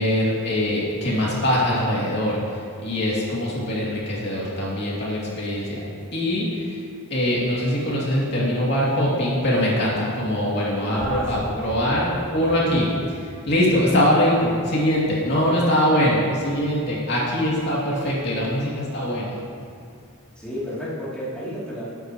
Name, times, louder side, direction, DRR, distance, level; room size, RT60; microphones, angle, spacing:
voice 1, 0.0-5.8 6.1-6.8 7.1-19.4, equal, 50° left, -6 dB, 2.6 m, -22 dB
voice 2, 10.9-11.9 20.4-21.9, right 1 dB, 5° left, -10 dB, 2.9 m, -31 dB
20.5 x 9.2 x 3.1 m, 2.4 s
head